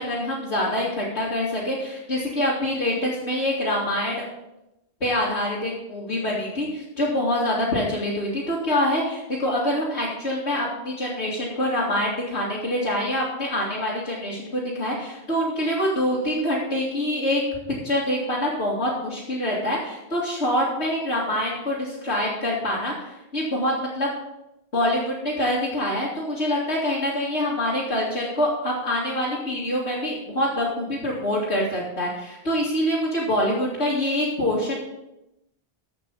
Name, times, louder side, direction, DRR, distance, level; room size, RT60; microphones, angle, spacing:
voice 1, 0.0-4.2 5.0-17.4 17.8-24.1 24.7-34.8, left 1 dB, 85° left, -8 dB, 2.8 m, -25 dB
14.5 x 6.0 x 5.4 m, 0.90 s
omnidirectional pair, 1.1 m